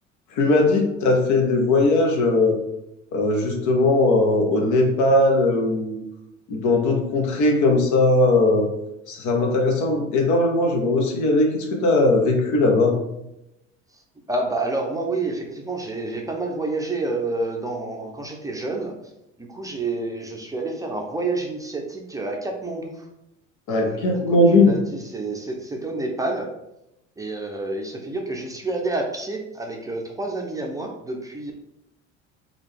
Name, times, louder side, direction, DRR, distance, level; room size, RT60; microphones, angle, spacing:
voice 1, 0.3-2.6 3.1-6.0 6.5-8.7 9.1-13.0 23.7-24.7, left 2 dB, 55° left, 2 dB, 1.0 m, -19 dB
voice 2, 14.3-18.9 19.4-23.0 23.7-26.5 27.2-31.5, right 2 dB, 10° right, 1 dB, 0.6 m, -29 dB
3.8 x 2.4 x 3.4 m, 0.86 s
hypercardioid pair, 70°, 37 cm